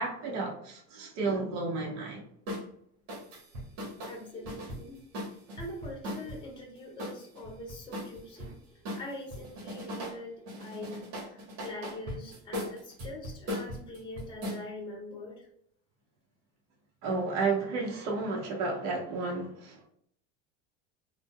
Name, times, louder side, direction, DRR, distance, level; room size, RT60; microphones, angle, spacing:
voice 1, 0.0-2.2 17.0-19.8, right 3 dB, 50° right, -1 dB, 1.0 m, -32 dB
sound 1, 2.5-2.7 3.1-6.4 7.0-8.5 8.8-10.2 10.5-14.6, equal, 65° right, 1.3 m, -39 dB
voice 2, 4.1-5.0 5.6-8.6 8.9-15.5, left 1 dB, 15° left, -2 dB, 0.9 m, -43 dB
3.7 x 2.1 x 2.3 m, 0.70 s
supercardioid pair, 130°, 35 cm